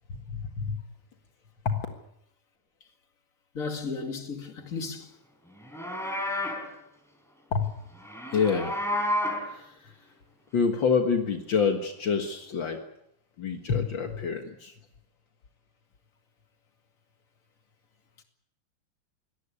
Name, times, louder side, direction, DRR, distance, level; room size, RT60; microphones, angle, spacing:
voice 1, 0.1-0.8 1.6-1.9 7.5-7.8 8.3-8.7 9.5-10.0 10.5-12.8 13.4-14.7, left 5 dB, 65° left, 1.1 m, -27 dB
voice 2, 3.5-5.1, left 4 dB, 30° left, 1.9 m, -34 dB
Livestock farm animals working animals, 5.6-6.7 8.0-9.5, left 1 dB, ahead, 4.1 m, -30 dB
23.5 x 18.5 x 8.3 m
omnidirectional pair, 4.6 m